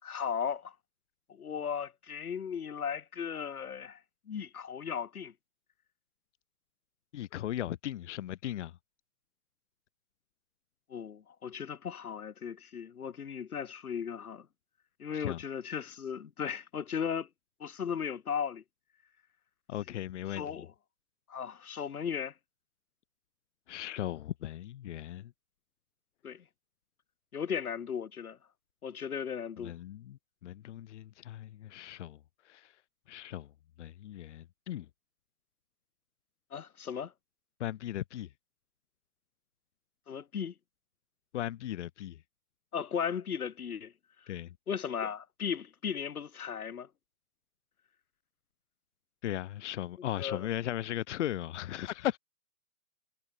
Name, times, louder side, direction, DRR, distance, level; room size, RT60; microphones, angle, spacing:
voice 1, 0.0-0.7 1.3-4.0 4.3-5.3 10.9-14.5 15.0-17.3 17.6-18.6 19.9-20.0 20.3-20.7 21.3-22.3 26.2-26.4 27.3-28.4 28.8-29.7 36.5-37.1 40.1-40.5 42.7-43.9 44.7-46.9 50.2-50.5, left 7 dB, 80° left, 2.2 m, -36 dB
voice 2, 7.1-8.7 15.1-15.4 19.7-20.7 23.7-25.3 29.6-32.2 32.4-32.7 33.1-33.5 33.8-34.9 37.6-38.3 41.3-42.2 44.3-44.5 49.2-52.2, left 12 dB, 55° left, 1.3 m, -37 dB
hypercardioid pair, 140°, 44 cm